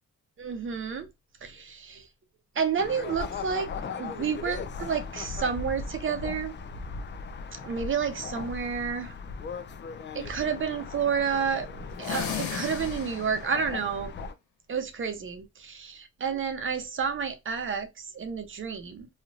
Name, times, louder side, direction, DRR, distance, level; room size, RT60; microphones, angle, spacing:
voice 1, 0.4-1.1 1.4-2.0 2.6-3.7 4.0-6.5 7.6-9.2 10.1-11.7 12.0-14.1 14.7-19.1, right 6 dB, 40° right, 0.7 m, -30 dB
sound 1, 2.8-14.3, left 5 dB, 40° left, 0.5 m, -38 dB
sound 2, 11.9-13.6, left 7 dB, 85° left, 1.1 m, -35 dB
3.1 x 2.4 x 2.4 m
cardioid pair, 90°, 30 cm